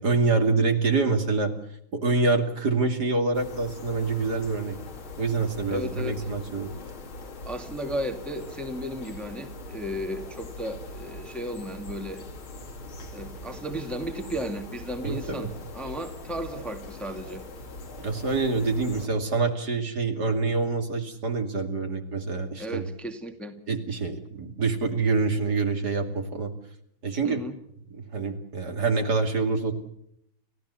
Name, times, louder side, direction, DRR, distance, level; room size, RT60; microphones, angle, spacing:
voice 1, 0.0-1.5 1.9-4.8 5.2-6.7 15.0-15.5 18.0-22.8 23.7-26.5 27.0-27.4 28.0-29.7, right 4 dB, 50° right, 5 dB, 3.0 m, -26 dB
sound 1, 3.3-19.1, left 2 dB, 80° left, 3.3 m, -41 dB
voice 2, 5.7-6.2 7.5-12.2 13.1-17.4 22.6-23.6 27.2-27.6, equal, ahead, 6 dB, 2.0 m, -34 dB
30.0 x 15.5 x 8.2 m, 0.73 s
omnidirectional pair, 2.2 m